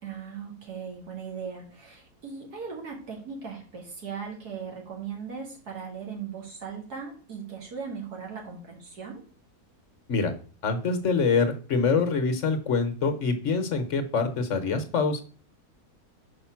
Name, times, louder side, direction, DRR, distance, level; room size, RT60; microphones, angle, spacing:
voice 1, 0.0-9.2, right 6 dB, 85° right, -1 dB, 2.5 m, -38 dB
voice 2, 10.6-15.2, left 4 dB, 55° left, 7 dB, 1.2 m, -25 dB
5.2 x 5.0 x 5.8 m, 0.39 s
omnidirectional pair, 1.6 m